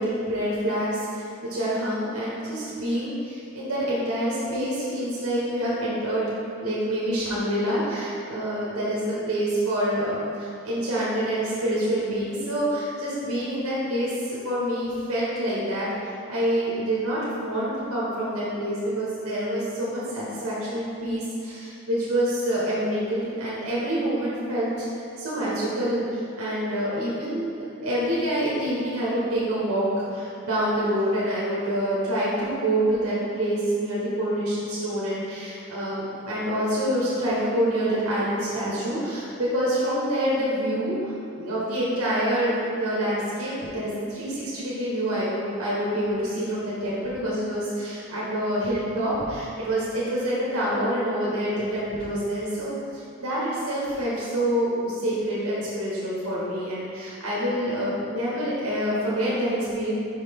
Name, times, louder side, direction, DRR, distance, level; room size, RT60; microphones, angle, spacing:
voice 1, 0.0-6.3 6.6-24.8 25.2-27.5 27.8-29.8 30.1-60.0, right 1 dB, 80° right, -7 dB, 1.1 m, -27 dB
5.5 x 5.1 x 3.5 m, 2.6 s
head